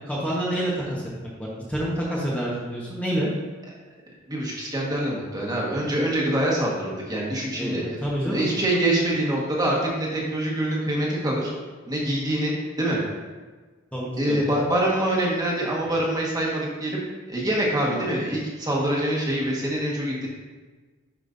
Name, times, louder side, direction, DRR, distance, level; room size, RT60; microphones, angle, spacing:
voice 1, 0.1-3.3 7.6-8.5 13.9-14.4, right 1 dB, 5° left, -6 dB, 1.1 m, -28 dB
voice 2, 4.3-7.8 8.3-11.5 11.9-13.0 14.2-17.0 17.3-20.3, right 1 dB, 20° right, -4 dB, 1.5 m, -25 dB
10.5 x 5.3 x 2.6 m, 1.3 s
head